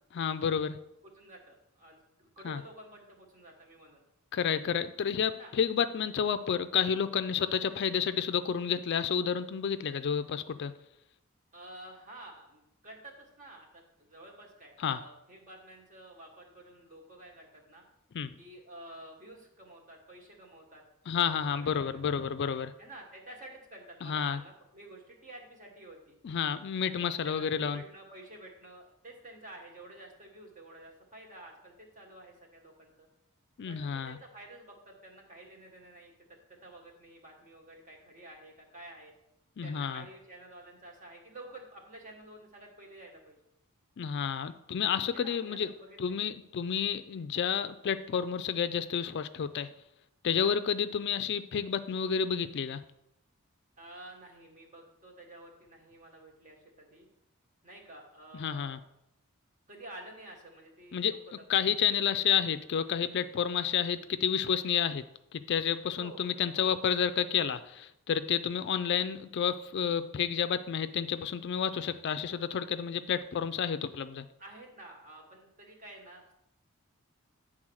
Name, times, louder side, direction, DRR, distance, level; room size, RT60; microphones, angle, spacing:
voice 1, 0.2-0.8 2.4-2.6 4.3-10.7 14.8-15.0 18.1-18.3 21.1-22.7 24.0-24.4 26.2-27.8 33.6-34.2 39.6-40.0 44.0-45.7 46.0-49.7 50.2-52.8 58.4-58.8 60.9-61.1 61.5-65.0 65.3-74.2, left 7 dB, 50° left, 11 dB, 0.4 m, -30 dB
voice 2, 1.0-4.0 5.3-5.5 11.5-17.8 18.4-20.8 21.3-22.2 22.8-26.2 26.8-33.1 33.7-39.1 39.6-43.4 45.1-46.2 50.7-51.1 53.8-57.1 57.6-58.8 59.7-61.4 62.1-62.3 65.9-66.8 74.4-76.3, right 1 dB, 35° right, 1 dB, 1.5 m, -51 dB
8.9 x 3.8 x 6.3 m, 0.84 s
head